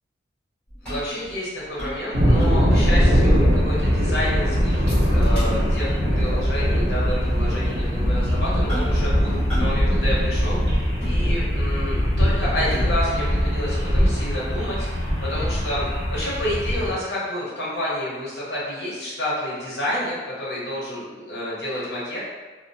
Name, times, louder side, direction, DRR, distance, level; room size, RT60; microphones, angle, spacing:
sound 1, 0.7-3.0 3.3-3.4 3.8-4.2 4.9-5.9 6.2-6.4 7.1-7.2 8.7-9.1 9.5-9.9 10.1-11.7 12.2-13.2 13.8-16.6 16.9-17.0, equal, 5° left, 1.0 m, -36 dB
voice 1, 0.8-14.9 15.2-22.2, left 1 dB, 60° left, -7 dB, 0.9 m, -29 dB
sound 2, 2.1-16.9, equal, 55° right, 0.8 m, -21 dB
2.8 x 2.0 x 2.6 m, 1.3 s
head